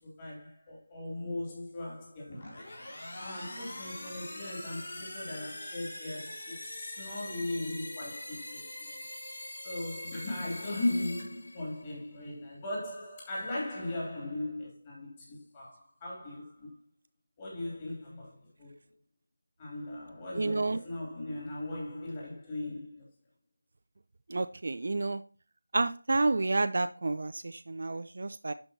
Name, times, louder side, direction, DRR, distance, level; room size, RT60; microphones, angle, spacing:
voice 1, 0.0-2.7 3.2-9.0 9.6-16.7 17.4-18.9 19.6-23.0, left 1 dB, 20° left, 2.9 m, -38 dB
sound 1, 2.3-12.0, left 1 dB, 45° left, 3.1 m, -43 dB
voice 2, 20.4-20.8 24.3-25.2 25.7-28.5, right 2 dB, 45° right, 0.3 m, -30 dB
11.5 x 5.2 x 2.8 m
figure-of-eight pair, 165°, 0 cm